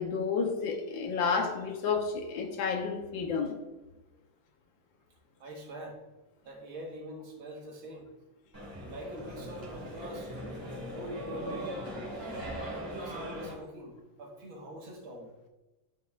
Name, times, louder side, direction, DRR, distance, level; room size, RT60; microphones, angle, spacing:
voice 1, 0.0-3.6, left 5 dB, 75° left, 3 dB, 1.6 m, -31 dB
voice 2, 5.4-6.0 6.5-8.1 8.9-10.3 10.9-15.3, right 1 dB, 80° right, 0 dB, 2.1 m, -44 dB
sound 1, 8.5-13.5, equal, 15° right, 1.9 m, -39 dB
11.0 x 5.3 x 2.4 m, 1.1 s
omnidirectional pair, 2.2 m